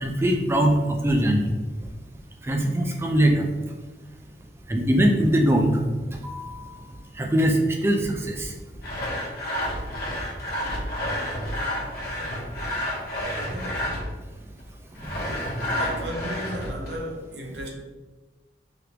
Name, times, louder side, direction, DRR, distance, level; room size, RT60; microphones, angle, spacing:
voice 1, 0.0-1.5 2.5-3.4 4.7-5.8 6.2-6.7 7.2-8.5, right 1 dB, 15° right, 2 dB, 0.3 m, -21 dB
Sawing, 8.8-14.2 15.0-17.0, left 1 dB, 55° left, 0.7 m, -30 dB
voice 2, 13.5-14.0 15.4-17.7, equal, 65° right, 1 dB, 0.6 m, -35 dB
3.3 x 2.4 x 2.8 m, 1.3 s
head